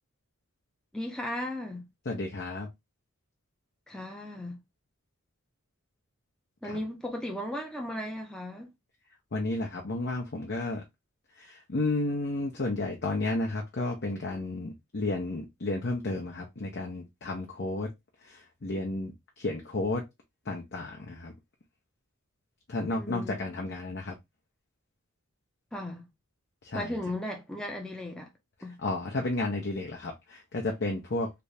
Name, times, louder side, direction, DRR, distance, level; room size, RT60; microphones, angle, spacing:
voice 1, 0.9-1.9 3.9-4.6 6.6-8.7 22.9-23.5 25.7-26.0 26.7-28.3 28.6-28.8, left 1 dB, 5° left, 0.6 m, -36 dB
voice 2, 2.1-2.7 6.6-6.8 9.3-10.8 11.4-17.9 18.3-20.0 20.5-21.3 22.7-24.1 26.6-26.9 28.8-31.3, left 2 dB, 55° left, 0.7 m, -32 dB
3.4 x 2.7 x 3.3 m
head